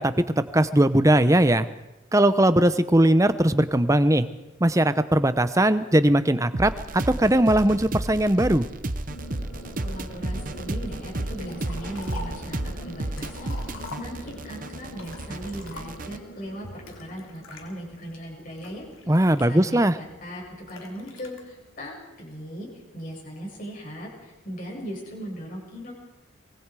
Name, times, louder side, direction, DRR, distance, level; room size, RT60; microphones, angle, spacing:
voice 1, 0.0-1.7 2.1-4.3 4.6-8.6 19.1-20.0, right 1 dB, 15° right, 12 dB, 0.8 m, -20 dB
sound 1, 6.5-16.2, right 1 dB, 40° right, 1.0 m, -33 dB
sound 2, 9.1-21.7, equal, 70° left, 6.7 m, -45 dB
voice 2, 9.8-18.8 19.3-22.7 22.9-25.9, equal, 40° left, -2 dB, 7.6 m, -38 dB
Liquid, 11.4-12.5 12.9-14.5 14.9-16.2 16.9-17.6 18.2-19.9 20.7-21.4, left 3 dB, 90° left, 3.8 m, -43 dB
24.5 x 23.0 x 4.9 m, 1.0 s
head